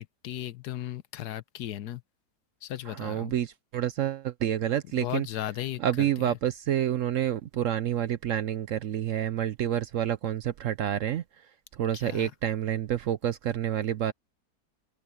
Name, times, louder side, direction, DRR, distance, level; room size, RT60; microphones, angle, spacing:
voice 1, 0.0-2.0 2.6-3.3 5.0-6.3 11.9-12.3, left 12 dB, 75° left, 1.3 m, -36 dB
voice 2, 2.9-5.3 5.8-11.2 11.8-14.1, right 11 dB, 65° right, 0.8 m, -28 dB
omnidirectional pair, 1.8 m